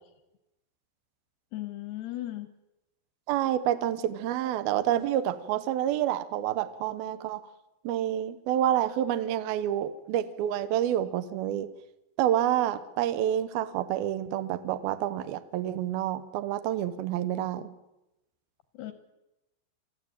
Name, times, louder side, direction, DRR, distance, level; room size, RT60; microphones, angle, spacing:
voice 1, 1.5-2.5 18.8-18.9, left 15 dB, 75° left, 9 dB, 2.5 m, -36 dB
voice 2, 3.3-7.4 7.8-11.7 12.2-17.7, right 11 dB, 80° right, 11 dB, 2.2 m, -28 dB
25.5 x 14.5 x 9.0 m, 0.93 s
omnidirectional pair, 5.9 m